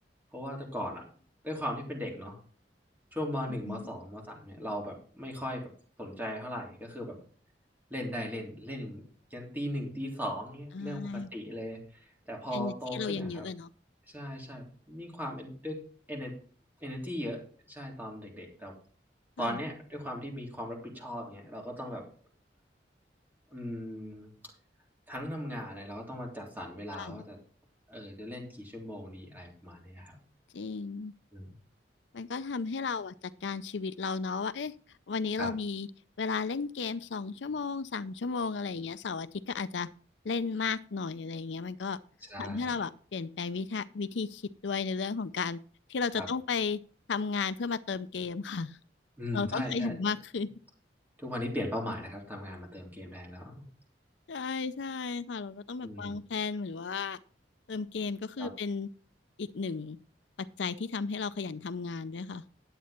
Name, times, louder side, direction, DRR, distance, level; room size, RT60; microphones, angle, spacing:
voice 1, 0.3-1.0 1.4-2.4 3.1-5.7 6.0-7.2 7.9-9.0 9.3-11.8 12.3-13.5 14.1-15.8 16.1-16.3 16.8-17.4 17.7-18.7 19.4-22.0 23.5-24.3 25.1-27.4 27.9-30.2 31.3-31.5 35.4-35.5 42.3-42.7 46.1-46.3 49.2-49.9 51.2-53.6 55.8-56.2 58.4-58.5, equal, 10° right, 3.3 m, -38 dB
voice 2, 10.7-11.3 12.5-13.7 19.4-19.6 26.9-27.2 30.5-31.1 32.1-33.1 33.4-34.7 35.1-35.9 36.2-39.9 40.2-42.0 42.4-45.6 45.9-46.8 47.1-48.8 49.3-50.5 54.3-57.2 57.7-58.9 59.4-60.0 60.4-62.4, left 4 dB, 85° left, 0.5 m, -34 dB
10.5 x 8.4 x 4.4 m
head